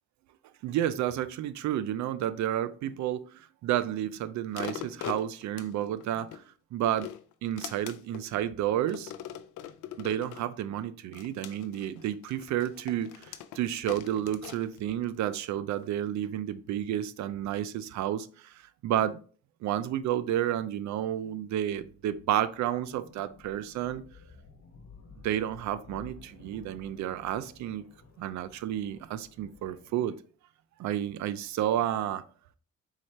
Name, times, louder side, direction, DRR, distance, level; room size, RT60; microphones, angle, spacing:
voice 1, 0.6-6.4 6.7-7.1 7.4-9.1 10.0-19.2 19.6-24.0 25.2-27.8 28.2-30.2 30.8-32.2, right 11 dB, 70° right, 0.5 m, -31 dB
sound 1, 4.5-6.4 6.8-8.3 8.9-10.5 11.1-15.3 15.8-15.9, left 11 dB, 85° left, 0.4 m, -42 dB
sound 2, 21.7-30.0, left 4 dB, 60° left, 1.1 m, -54 dB
4.6 x 2.9 x 3.2 m
cardioid pair, 90°, 30 cm